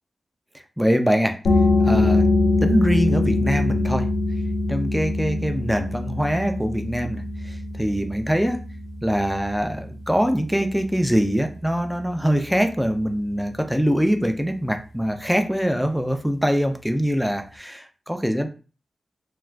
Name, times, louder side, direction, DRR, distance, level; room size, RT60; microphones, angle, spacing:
voice 1, 0.8-1.3 1.9-2.3 2.6-4.1 4.7-8.6 9.0-18.5, equal, ahead, 5 dB, 0.3 m, -23 dB
sound 1, 1.5-12.8, left 2 dB, 75° left, 0.4 m, -24 dB
2.4 x 2.2 x 3.2 m, 0.35 s
wide cardioid pair, 175°, 0 cm